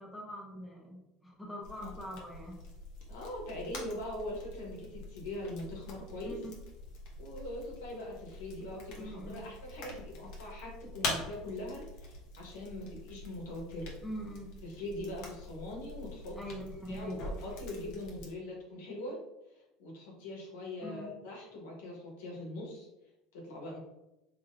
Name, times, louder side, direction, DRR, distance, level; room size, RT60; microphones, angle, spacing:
voice 1, 0.0-2.6 6.1-6.5 9.0-9.5 14.0-14.5 16.4-17.2 20.8-21.2, equal, 5° left, -2 dB, 0.9 m, -43 dB
sound 1, 1.6-18.3, left 2 dB, 65° left, 1.0 m, -44 dB
voice 2, 3.1-6.3 7.2-13.9 14.6-16.4 16.9-19.2 19.8-22.9 23.3-23.8, left 1 dB, 85° left, -2 dB, 1.3 m, -42 dB
3.7 x 3.1 x 2.6 m, 0.95 s
supercardioid pair, 110°, 0 cm